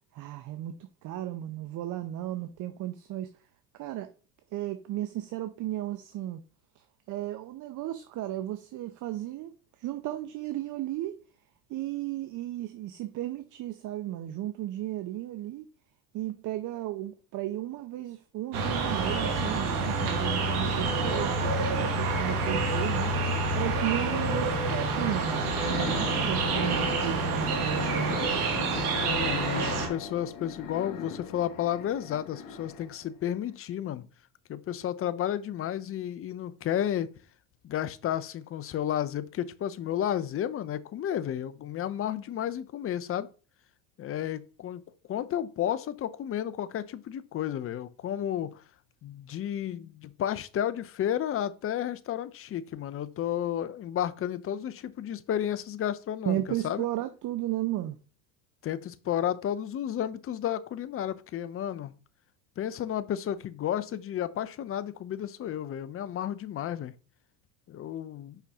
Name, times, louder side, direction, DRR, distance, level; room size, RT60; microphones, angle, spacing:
voice 1, 0.1-0.7 1.0-3.3 3.8-4.1 4.5-6.4 6.8-9.5 9.8-11.2 11.7-15.7 16.1-23.1 23.5-28.1 56.3-58.0, right 14 dB, 45° right, 0.7 m, -34 dB
sound 1, 18.5-29.9, right 3 dB, 90° right, 1.8 m, -28 dB
voice 2, 24.0-24.6 28.9-34.1 34.5-37.1 37.6-43.3 44.0-44.8 45.1-48.6 49.0-56.8 58.6-61.9 62.6-66.9 67.7-68.4, left 10 dB, 30° left, 0.6 m, -32 dB
sound 2, 25.0-33.1, left 5 dB, 45° left, 1.5 m, -39 dB
5.7 x 5.6 x 3.5 m
supercardioid pair, 95°, 44 cm